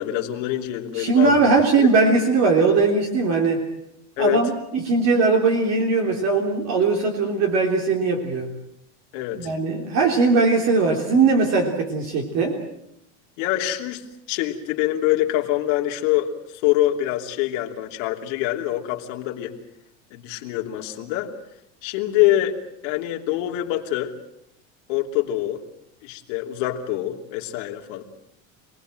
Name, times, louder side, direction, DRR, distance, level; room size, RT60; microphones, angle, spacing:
voice 1, 0.0-1.3 4.2-4.4 9.1-9.5 13.4-19.5 20.1-21.3 21.8-22.6 22.8-24.1 24.9-25.6 26.0-28.0, left 14 dB, 75° left, 3 dB, 3.0 m, -25 dB
voice 2, 0.9-3.7 4.2-8.5 9.3-12.6, right 4 dB, 45° right, 2 dB, 3.6 m, -20 dB
27.0 x 19.5 x 7.8 m, 0.79 s
supercardioid pair, 145°, 38 cm